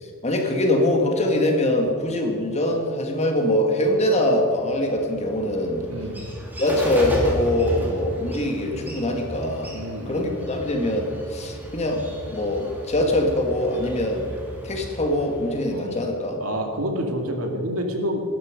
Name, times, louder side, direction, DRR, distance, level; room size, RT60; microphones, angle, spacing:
voice 1, 0.0-5.8 6.6-9.8 10.1-14.3 14.6-16.4, left 1 dB, 30° left, 2 dB, 2.2 m, -23 dB
Bird, 4.6-16.1, equal, 10° right, 3.1 m, -34 dB
voice 2, 5.9-6.2 9.7-10.5 15.7-16.0 16.4-18.2, equal, 80° right, 3 dB, 2.3 m, -28 dB
19.0 x 12.0 x 5.3 m, 2.2 s
head